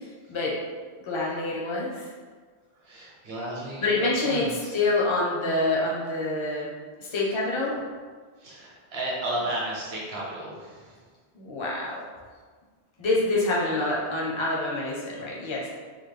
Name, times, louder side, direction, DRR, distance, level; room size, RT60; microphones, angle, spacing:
voice 1, 1.0-2.1 3.8-6.7 7.0-7.9 11.3-12.0 13.0-15.6, left 2 dB, 30° left, -5 dB, 0.6 m, -26 dB
voice 2, 2.7-4.7 8.4-11.0 15.6-15.7, right 1 dB, 65° right, -4 dB, 1.1 m, -34 dB
3.5 x 2.1 x 3.3 m, 1.5 s
omnidirectional pair, 1.1 m